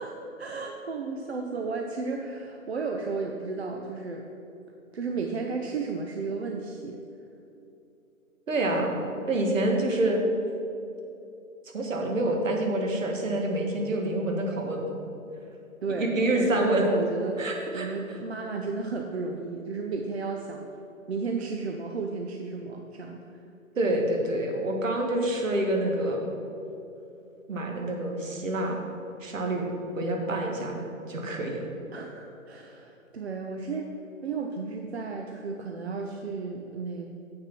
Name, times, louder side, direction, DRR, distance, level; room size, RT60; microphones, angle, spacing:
voice 1, 0.0-4.3 4.9-7.0 15.8-20.7 21.1-23.4 31.9-33.9 34.2-37.1, right 4 dB, 50° right, 2 dB, 0.7 m, -33 dB
voice 2, 8.5-9.0 9.3-10.2 11.7-14.9 16.0-16.8 17.4-17.9 23.8-26.2 27.5-28.8 29.2-29.7 30.0-30.8 31.1-31.7, right 1 dB, 65° right, 1 dB, 1.9 m, -27 dB
7.7 x 6.4 x 5.9 m, 2.8 s
hypercardioid pair, 165°, 42 cm